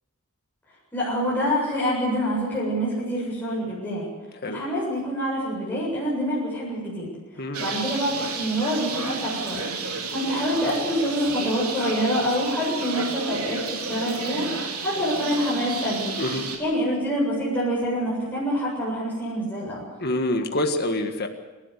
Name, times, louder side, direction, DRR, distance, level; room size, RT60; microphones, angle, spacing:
voice 1, 0.9-4.1 4.5-9.6 10.1-16.1 16.6-19.9, equal, 10° left, -7 dB, 7.7 m, -26 dB
Bird, 7.5-16.6, right 4 dB, 90° right, 3.7 m, -31 dB
voice 2, 20.0-21.3, left 1 dB, 45° left, 5 dB, 1.7 m, -26 dB
28.0 x 12.5 x 8.3 m, 1.2 s
head